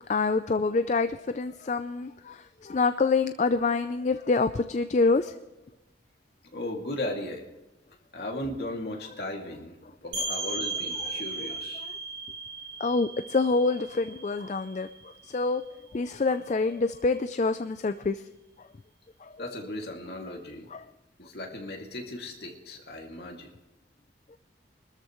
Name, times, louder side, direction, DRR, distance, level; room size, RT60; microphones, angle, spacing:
voice 1, 0.1-5.4 10.4-10.5 11.0-11.5 11.8-11.9 12.8-14.9 15.2-15.6 15.9-18.2 18.6-18.7 19.2-19.4 20.7-20.9, left 3 dB, 40° left, 10 dB, 0.4 m, -27 dB
voice 2, 6.5-7.5 8.1-9.8 10.0-11.9 19.4-20.7 21.2-23.5, left 1 dB, 60° left, 1 dB, 2.4 m, -36 dB
sound 1, 10.1-15.6, right 3 dB, 70° right, 3.4 m, -36 dB
24.5 x 13.5 x 3.1 m, 1.1 s
head